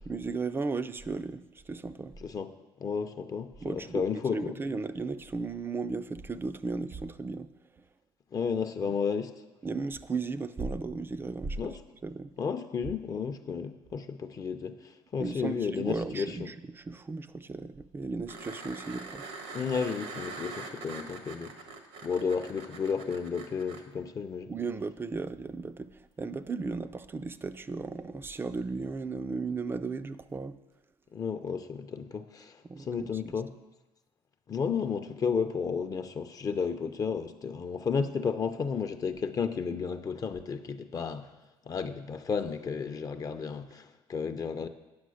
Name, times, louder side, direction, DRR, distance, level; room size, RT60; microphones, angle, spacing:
voice 1, 0.1-2.2 3.6-7.5 9.6-11.8 12.0-12.3 15.2-19.2 24.5-30.6 32.7-33.1, right 4 dB, 20° right, 13 dB, 0.4 m, -35 dB
voice 2, 2.2-2.5 2.8-4.6 8.3-9.3 11.6-11.8 12.4-16.5 19.5-21.5 22.0-24.5 31.1-33.5 34.5-41.3 41.7-44.7, left 6 dB, 35° left, 8 dB, 0.6 m, -32 dB
sound 1, 18.3-23.8 26.5-26.6, right 3 dB, 80° right, 1.4 m, -43 dB
9.5 x 6.1 x 6.3 m, 1.1 s
cardioid pair, 110°, 11 cm